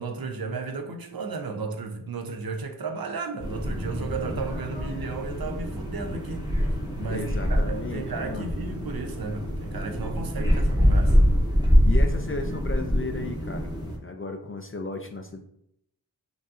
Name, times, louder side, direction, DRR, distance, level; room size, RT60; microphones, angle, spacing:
voice 1, 0.0-6.5 6.9-11.2, right 4 dB, 55° right, 0.6 m, -34 dB
sound 1, 3.4-14.0, equal, 10° right, 0.9 m, -25 dB
voice 2, 7.1-8.6 11.8-13.7 14.0-15.4, left 3 dB, 30° left, 0.4 m, -34 dB
5.1 x 2.6 x 2.4 m
wide cardioid pair, 95°, 43 cm